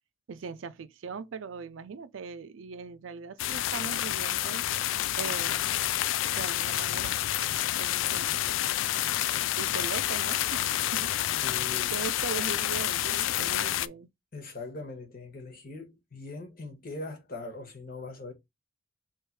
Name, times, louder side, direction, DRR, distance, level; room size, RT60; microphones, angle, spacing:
voice 1, 0.3-4.7 5.2-5.8 6.4-7.2 7.8-8.6 9.6-11.1 11.5-14.1, right 5 dB, 90° right, 0.4 m, -40 dB
sound 1, 3.4-13.9, left 13 dB, 80° left, 0.3 m, -29 dB
voice 2, 11.4-11.9 14.3-18.3, left 2 dB, 50° left, 1.4 m, -41 dB
3.2 x 3.1 x 4.5 m
head